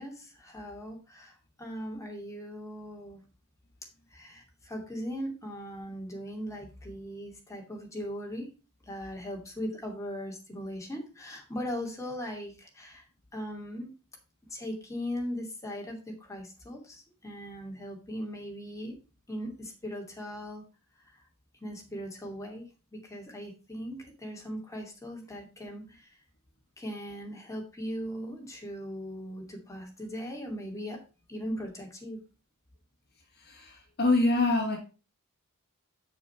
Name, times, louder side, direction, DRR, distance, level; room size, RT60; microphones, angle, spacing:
voice 1, 0.0-3.2 4.1-8.5 8.9-13.0 13.3-13.9 14.5-19.0 19.3-20.6 21.6-22.7 22.9-26.1 26.8-31.0 31.3-32.2, equal, 15° left, 2.7 m, -39 dB
voice 2, 33.4-34.8, left 2 dB, 50° left, 1.6 m, -25 dB
7.1 x 7.0 x 4.4 m
head